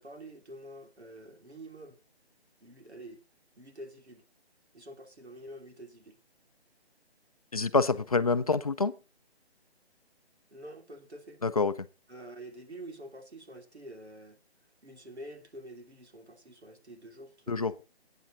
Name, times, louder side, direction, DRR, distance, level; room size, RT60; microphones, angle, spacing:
voice 1, 0.0-2.0 2.6-3.2 3.6-4.2 4.7-6.2 10.5-11.4 12.1-14.4 14.8-17.7, right 1 dB, 85° right, 2.8 m, -47 dB
voice 2, 7.5-8.9 11.4-11.7 17.5-17.8, left 4 dB, 35° left, 0.5 m, -26 dB
14.0 x 9.2 x 4.1 m
figure-of-eight pair, 150°, 32 cm